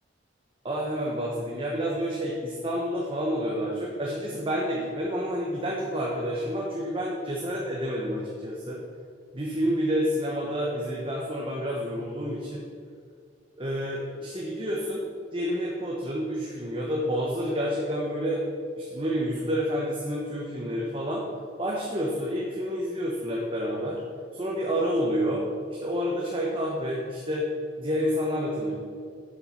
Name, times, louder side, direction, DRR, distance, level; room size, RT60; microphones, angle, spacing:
voice 1, 0.6-8.8 9.3-12.6 13.6-15.1 15.3-18.4 18.8-21.3 21.6-24.0 24.3-25.5 25.8-27.5 27.8-28.7, equal, 30° right, -3 dB, 1.1 m, -29 dB
7.7 x 7.5 x 5.6 m, 2.2 s
head